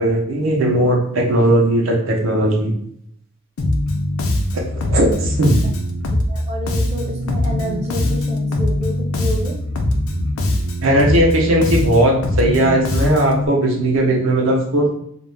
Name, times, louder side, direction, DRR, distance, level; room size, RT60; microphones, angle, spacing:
voice 1, 0.0-2.7 4.5-5.7 10.8-14.9, right 1 dB, 75° right, 0 dB, 0.6 m, -17 dB
Bass guitar, 3.6-13.5, left 1 dB, 90° left, 0.4 m, -21 dB
voice 2, 6.3-9.6, left 1 dB, 30° right, -1 dB, 0.5 m, -29 dB
2.4 x 2.1 x 3.1 m, 0.69 s
head